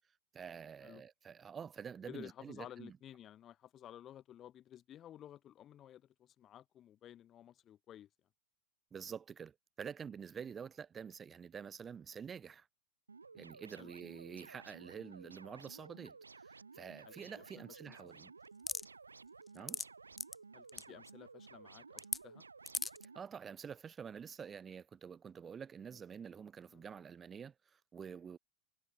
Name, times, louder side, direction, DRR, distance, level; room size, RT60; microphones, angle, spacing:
voice 1, 0.3-3.0 8.9-12.7 13.3-18.3 19.5-19.8 23.1-28.4, right 7 dB, 20° right, 1.9 m, -48 dB
voice 2, 2.1-8.1 13.8-13.9 17.0-18.2 20.5-22.4 26.7-26.8, left 11 dB, 30° left, 5.6 m, -54 dB
sound 1, 13.1-23.2, right 4 dB, 75° right, 3.0 m, -55 dB
sound 2, 18.7-18.8 19.5-19.8 20.2-20.3 20.7-20.8 22.0-22.2 22.7-23.0, left 4 dB, 10° left, 1.3 m, -37 dB
figure-of-eight pair, 90°, 0 cm